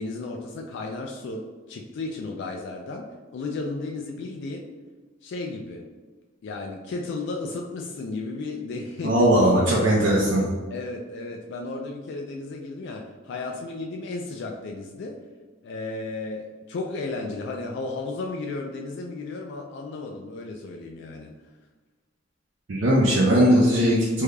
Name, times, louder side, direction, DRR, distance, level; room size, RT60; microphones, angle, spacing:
voice 1, 0.0-4.7 5.2-5.9 6.4-9.3 10.7-15.2 15.6-21.3, left 3 dB, 65° left, 1 dB, 0.3 m, -34 dB
voice 2, 9.0-10.5 22.7-24.2, equal, 65° right, -4 dB, 0.6 m, -19 dB
3.6 x 3.2 x 2.2 m, 1.3 s
head